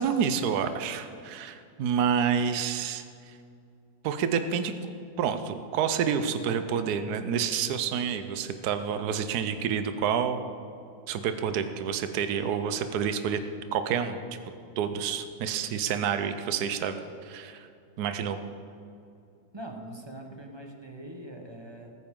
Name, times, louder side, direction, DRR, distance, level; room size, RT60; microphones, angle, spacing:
voice 1, 0.0-3.4 4.0-4.7 5.2-10.4 11.1-13.4 13.7-14.2 14.8-17.7 18.0-18.4, right 7 dB, 75° right, 9 dB, 1.2 m, -28 dB
voice 2, 19.5-21.9, right 1 dB, 20° right, 2 dB, 1.0 m, -42 dB
19.0 x 9.4 x 3.8 m, 2.5 s
omnidirectional pair, 1.7 m